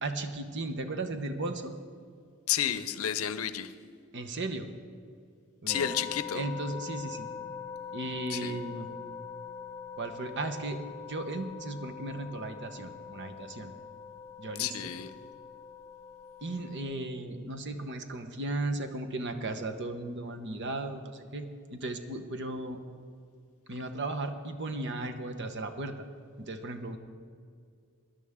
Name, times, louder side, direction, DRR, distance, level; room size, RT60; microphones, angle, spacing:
voice 1, 0.0-1.7 4.1-4.7 5.6-5.9 6.3-7.3 7.9-8.9 10.0-10.8 11.1-13.7 14.4-14.9 16.4-22.8 23.7-26.0 26.4-27.0, right 2 dB, 55° right, 1.0 m, -36 dB
voice 2, 2.5-3.7 5.7-6.4 8.3-8.6 14.6-15.1, left 10 dB, 80° left, 0.6 m, -31 dB
sound 1, 5.7-16.8, left 7 dB, 15° left, 2.5 m, -43 dB
19.5 x 11.0 x 3.6 m
head